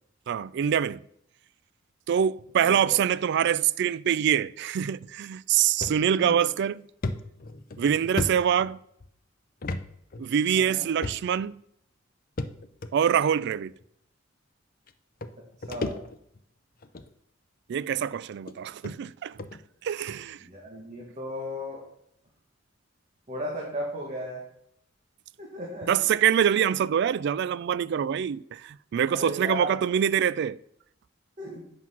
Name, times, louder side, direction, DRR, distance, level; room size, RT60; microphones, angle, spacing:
voice 1, 0.3-1.0 2.1-6.8 7.8-8.8 10.2-11.6 12.9-13.7 17.7-19.4 19.8-20.4 25.9-30.6, right 8 dB, 60° right, 0.3 m, -25 dB
voice 2, 2.6-3.0 6.2-6.5 10.5-10.9 15.7-16.0 20.4-21.8 23.3-24.4 25.4-26.1 29.1-29.7 31.4-31.7, equal, 40° right, 1.8 m, -35 dB
sound 1, 5.8-6.0 6.4-6.5 7.0-9.1 9.6-9.8 10.1-10.2 11.0-11.5 12.4-12.9 13.8-13.9 14.9-15.0 15.2-16.4 16.8-17.1 17.9-18.0 18.5-18.6 18.8-19.0 19.4-19.6, left 2 dB, 45° left, 0.6 m, -34 dB
8.2 x 6.0 x 5.8 m
head